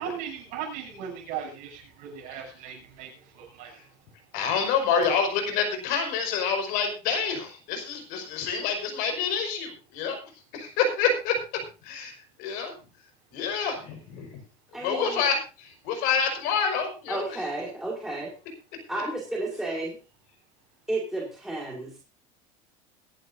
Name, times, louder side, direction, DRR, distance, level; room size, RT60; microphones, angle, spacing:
voice 1, 0.0-3.8, right 8 dB, 55° right, 0 dB, 7.9 m, -38 dB
voice 2, 4.3-10.2 10.5-11.3 11.8-12.7 13.3-14.4 14.8-17.4, left 6 dB, 60° left, 6 dB, 5.3 m, -27 dB
voice 3, 14.7-15.2 17.1-18.3 18.9-20.0 20.9-22.0, right 2 dB, 5° right, -2 dB, 2.5 m, -32 dB
22.5 x 11.0 x 2.7 m, 0.32 s
cardioid pair, 160°, 17 cm